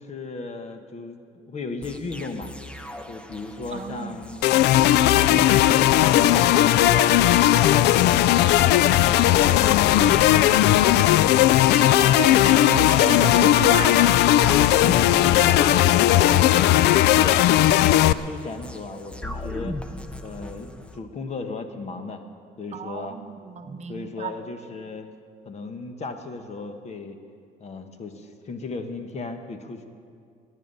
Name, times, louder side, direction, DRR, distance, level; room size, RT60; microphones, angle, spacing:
voice 1, 0.0-2.5 3.1-4.5 5.2-6.2 6.5-7.3 7.8-8.3 8.6-10.0 10.3-11.4 15.1-17.5 17.9-19.8 20.2-22.2 22.6-23.2 23.9-25.1 25.4-27.2 27.6-29.8, left 3 dB, 40° left, 7 dB, 1.3 m, -35 dB
sound 1, 1.8-21.0, left 2 dB, 5° left, 0.8 m, -38 dB
voice 2, 3.7-4.2 6.7-7.0 11.7-14.2 22.7-24.3, right 7 dB, 40° right, 7 dB, 0.9 m, -33 dB
sound 2, 4.4-18.1, left 13 dB, 80° left, 0.4 m, -17 dB
20.0 x 9.5 x 5.5 m, 2.3 s
cardioid pair, 110°, 17 cm